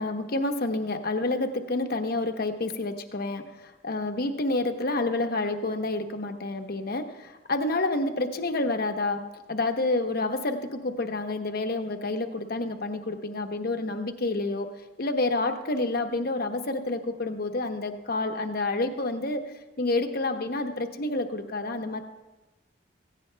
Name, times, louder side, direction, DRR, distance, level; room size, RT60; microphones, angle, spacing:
voice 1, 0.0-9.2 9.5-14.7 15.0-22.0, left 2 dB, 55° left, 6 dB, 0.9 m, -29 dB
17.5 x 15.5 x 2.2 m, 1.1 s
head